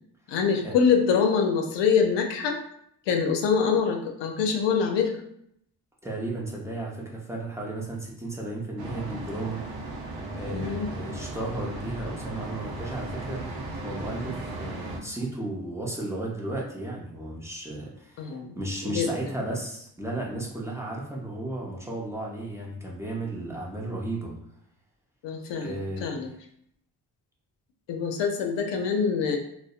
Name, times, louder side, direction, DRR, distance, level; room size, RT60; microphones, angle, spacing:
voice 1, 0.3-2.6 3.1-5.2 10.5-10.9 18.2-18.5 18.9-19.1 25.2-26.3 27.9-29.4, left 6 dB, 80° left, 4 dB, 0.5 m, -24 dB
voice 2, 6.0-9.6 10.3-18.3 18.5-24.3 25.5-26.1, right 2 dB, 5° right, -3 dB, 0.6 m, -34 dB
sound 1, 8.8-15.0, right 2 dB, 60° right, 0.6 m, -36 dB
2.6 x 2.0 x 2.4 m, 0.71 s
cardioid pair, 60°, 42 cm